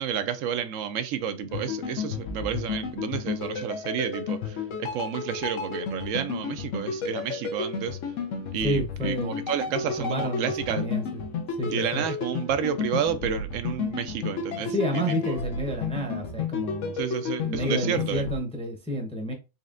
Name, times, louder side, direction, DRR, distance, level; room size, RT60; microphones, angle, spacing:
voice 1, 0.0-8.0 8.5-10.9 11.7-15.4 17.0-18.2, right 8 dB, 90° right, 1.0 m, -30 dB
sound 1, 1.5-18.4, left 5 dB, 80° left, 1.1 m, -32 dB
voice 2, 8.6-9.5 9.8-11.2 11.6-12.0 14.7-17.0 17.4-19.3, equal, 5° left, 0.6 m, -30 dB
4.1 x 3.2 x 2.5 m
omnidirectional pair, 1.3 m